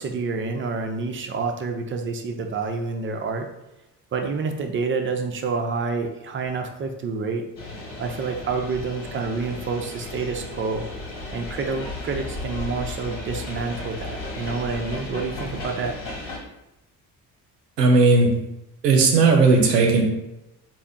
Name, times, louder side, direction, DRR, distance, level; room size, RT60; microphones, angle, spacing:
voice 1, 0.0-3.5 4.1-7.5 8.0-10.8 11.3-16.0, right 4 dB, 25° right, 5 dB, 0.5 m, -28 dB
sound 1, 7.6-16.4, left 2 dB, 50° left, 1.3 m, -35 dB
voice 2, 17.8-18.3 18.8-20.0, right 3 dB, 85° right, 1 dB, 0.7 m, -16 dB
4.3 x 2.1 x 3.6 m, 0.91 s
figure-of-eight pair, 45°, 48 cm